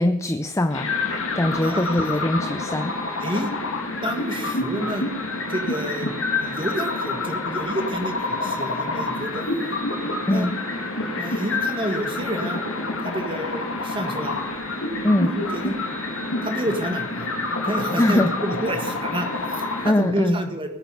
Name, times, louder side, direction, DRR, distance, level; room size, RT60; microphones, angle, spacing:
voice 1, 0.0-2.9 10.3-10.5 15.0-15.3 18.0-18.3 19.8-20.4, left 1 dB, 15° left, 6 dB, 0.6 m, -22 dB
sound 1, 0.7-19.9, left 2 dB, 75° left, 2.6 m, -28 dB
voice 2, 1.6-2.1 3.2-3.5 4.0-5.1 5.5-6.1 6.4-9.4 10.3-10.5 11.2-12.6 13.0-14.4 15.2-15.8 16.4-17.3 17.6-20.7, right 1 dB, 25° right, 5 dB, 1.9 m, -29 dB
20.5 x 8.6 x 5.6 m, 0.87 s
head